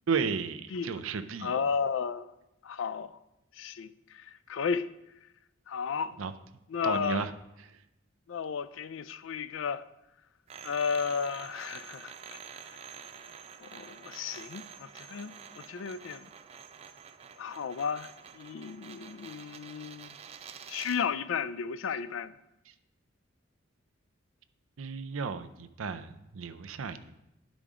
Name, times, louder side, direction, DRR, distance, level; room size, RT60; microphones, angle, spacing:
voice 1, 0.1-1.6 6.2-6.3 6.8-7.3 24.8-27.2, right 5 dB, 85° right, 0.5 m, -33 dB
voice 2, 1.4-2.3 2.6-3.2 3.5-4.9 5.7-6.2 6.7-7.2 8.3-9.9 10.6-12.4 13.6-16.3 17.4-20.2 20.7-22.3, left 6 dB, 75° left, 0.4 m, -34 dB
sound 1, 10.5-21.1, right 7 dB, 30° right, 0.3 m, -48 dB
11.5 x 5.1 x 3.7 m
head